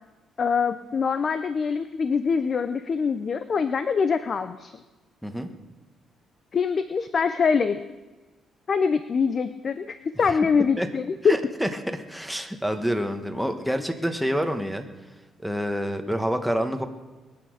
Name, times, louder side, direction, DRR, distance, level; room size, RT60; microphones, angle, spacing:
voice 1, 0.4-4.7 6.5-7.8 8.7-11.4, left 5 dB, 45° left, 11 dB, 0.7 m, -24 dB
voice 2, 11.2-14.9 15.4-16.9, equal, ahead, 5 dB, 1.5 m, -27 dB
21.5 x 8.7 x 6.6 m, 1.2 s
cardioid pair, 90°, 0 cm